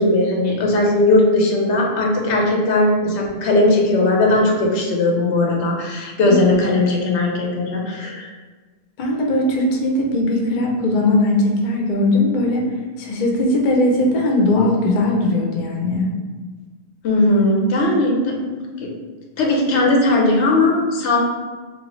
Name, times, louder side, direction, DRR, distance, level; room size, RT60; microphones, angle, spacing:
voice 1, 0.0-8.3 17.0-18.9 19.4-21.2, left 2 dB, 90° left, 0 dB, 0.9 m, -18 dB
voice 2, 9.0-12.7 13.0-16.1, left 1 dB, 55° left, 0 dB, 0.6 m, -19 dB
2.7 x 2.7 x 3.0 m, 1.4 s
omnidirectional pair, 1.2 m